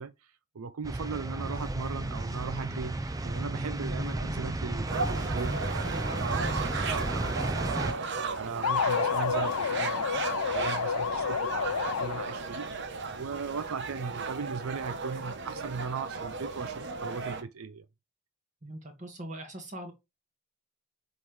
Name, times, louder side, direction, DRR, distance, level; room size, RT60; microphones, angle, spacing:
voice 1, 0.0-12.7 13.2-17.8, right 5 dB, 85° right, 0.6 m, -38 dB
sound 1, 0.8-7.9, right 2 dB, 15° right, 0.4 m, -33 dB
sound 2, 4.9-17.4, right 4 dB, 55° right, 0.9 m, -35 dB
sound 3, 8.6-12.5, left 7 dB, 85° left, 0.5 m, -30 dB
voice 2, 18.6-19.9, right 1 dB, 35° right, 1.8 m, -41 dB
7.8 x 3.9 x 3.2 m
head